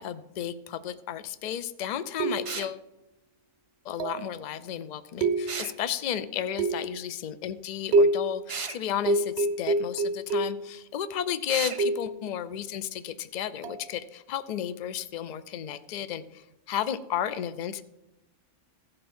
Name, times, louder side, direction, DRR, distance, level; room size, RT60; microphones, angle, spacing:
voice 1, 0.0-2.8 3.8-17.8, left 10 dB, 60° left, 13 dB, 0.4 m, -33 dB
sound 1, 2.2-2.7 4.0-4.4 5.2-5.8 6.6-7.1 7.9-8.4 9.1-10.7 11.8-12.2 13.6-13.9, right 2 dB, 65° right, 0.8 m, -26 dB
sound 2, 2.5-2.7 5.5-5.8 8.5-8.8 11.5-11.8, right 5 dB, 45° right, 0.4 m, -34 dB
16.0 x 5.4 x 4.3 m, 0.94 s
omnidirectional pair, 1.3 m